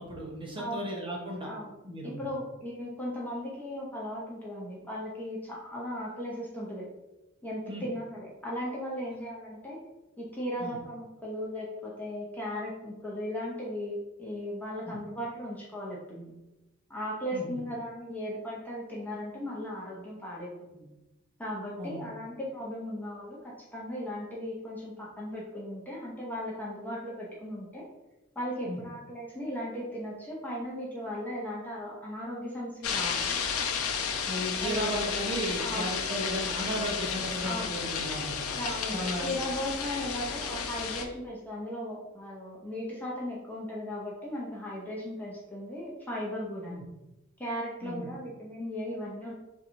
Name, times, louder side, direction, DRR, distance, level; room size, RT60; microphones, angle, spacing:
voice 1, 0.0-1.5 1.8-2.2 7.7-7.9 10.6-10.8 14.9-15.0 17.3-17.6 21.8-22.0 28.7-28.8 34.3-38.4 38.9-39.3 46.7-46.8 47.8-48.1, equal, 25° right, -2 dB, 0.9 m, -35 dB
voice 2, 0.6-0.9 1.4-1.7 2.0-6.9 7.4-9.8 10.2-16.3 16.9-20.9 21.4-27.8 28.4-33.2 34.6-34.8 35.6-36.0 37.4-37.8 38.5-46.8 47.4-49.3, equal, 10° left, -5 dB, 0.7 m, -37 dB
sound 1, 32.8-41.1, left 6 dB, 65° left, 0.5 m, -32 dB
3.7 x 2.7 x 4.4 m, 1.0 s
head